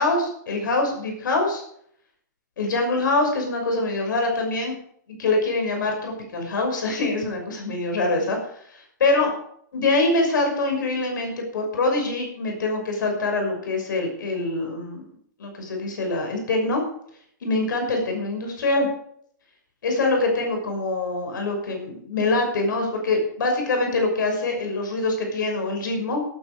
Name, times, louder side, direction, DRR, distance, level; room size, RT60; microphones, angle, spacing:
voice 1, 0.0-1.6 2.6-4.8 5.2-8.4 8.7-9.3 9.7-15.0 15.4-16.8 17.4-18.9 19.8-26.2, left 2 dB, 80° left, 3 dB, 6.1 m, -24 dB
17.0 x 10.0 x 4.8 m, 0.66 s
hypercardioid pair, 165°, 10 cm